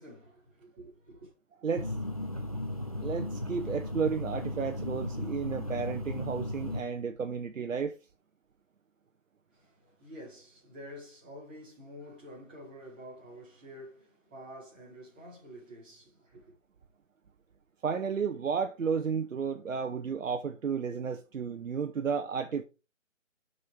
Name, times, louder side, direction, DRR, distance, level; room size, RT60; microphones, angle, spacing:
voice 1, 0.0-1.3 9.5-16.5, equal, 10° right, 1.6 m, -49 dB
sound 1, 1.8-6.8, left 1 dB, 30° left, 0.6 m, -35 dB
voice 2, 3.0-8.0 17.8-22.6, right 6 dB, 85° right, 0.9 m, -32 dB
6.6 x 5.5 x 4.6 m
hypercardioid pair, 175°, 39 cm